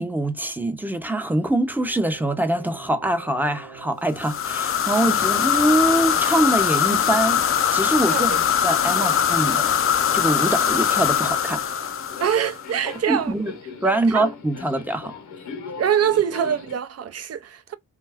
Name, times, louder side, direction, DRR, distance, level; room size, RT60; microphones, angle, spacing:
voice 1, 0.0-7.4 7.7-8.4 8.6-9.7 10.1-11.9 13.1-13.5 13.8-15.1, right 1 dB, 5° right, 0.6 m, -24 dB
sound 1, 1.8-13.4, right 8 dB, 85° right, 1.0 m, -45 dB
sound 2, 4.2-12.7, left 9 dB, 45° left, 0.4 m, -21 dB
Subway metro underground, 11.7-16.7, left 5 dB, 65° left, 0.8 m, -39 dB
voice 2, 12.2-13.3 13.8-14.3 15.8-17.8, right 9 dB, 50° right, 0.5 m, -24 dB
2.6 x 2.3 x 3.3 m
cardioid pair, 75°, 32 cm